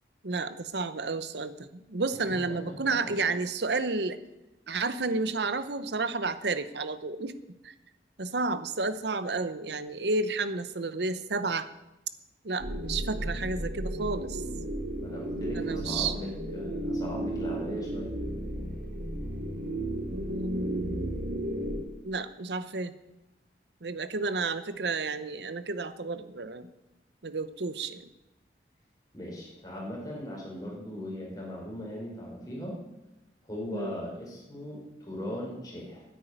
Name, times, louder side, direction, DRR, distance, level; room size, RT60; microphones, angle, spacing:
voice 1, 0.2-4.2 4.7-7.4 7.6-7.7 8.2-11.7 12.4-14.4 15.5-16.4 20.1-21.2 22.0-22.9 23.8-26.7 27.2-28.1 33.7-34.0, right 3 dB, 75° right, 13 dB, 0.9 m, -31 dB
voice 2, 2.5-2.9 14.9-18.1 29.1-32.8 33.4-36.0, left 1 dB, 20° left, -3 dB, 4.5 m, -39 dB
sound 1, 12.6-21.8, right 1 dB, 50° right, 2.0 m, -34 dB
10.0 x 9.3 x 9.2 m, 0.97 s
head